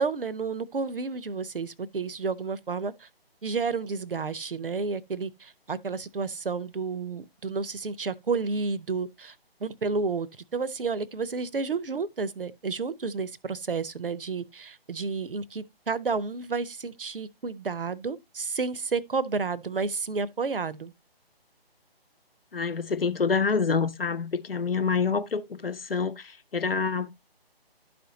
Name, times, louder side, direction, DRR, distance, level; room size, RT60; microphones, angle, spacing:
voice 1, 0.0-3.1 3.4-9.3 9.6-10.3 10.5-20.9, right 4 dB, 60° right, 0.7 m, -31 dB
voice 2, 22.5-27.1, left 5 dB, 65° left, 0.8 m, -27 dB
12.0 x 4.3 x 2.8 m
figure-of-eight pair, 145°, 31 cm